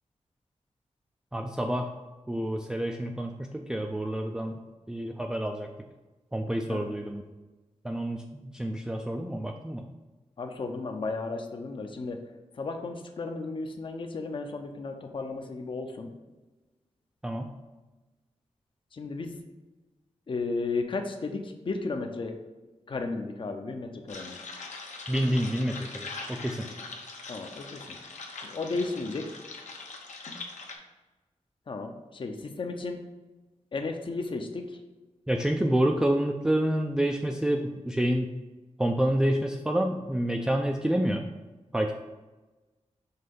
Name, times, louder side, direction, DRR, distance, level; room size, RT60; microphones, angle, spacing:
voice 1, 1.3-1.9 2.3-4.6 4.9-5.7 6.3-7.2 7.8-9.9 17.2-17.5 25.1-26.7 35.3-38.3 38.8-41.2 41.7-41.9, right 1 dB, 5° right, 2 dB, 0.3 m, -28 dB
voice 2, 10.4-12.2 12.6-16.1 19.0-19.4 20.3-22.3 22.9-24.4 27.3-27.6 28.5-29.2 31.7-33.0 33.7-34.6, left 3 dB, 45° left, 5 dB, 0.6 m, -34 dB
sound 1, 24.1-30.7, left 3 dB, 80° left, 0.9 m, -42 dB
5.6 x 3.3 x 5.3 m, 1.2 s
wide cardioid pair, 140°, 12 cm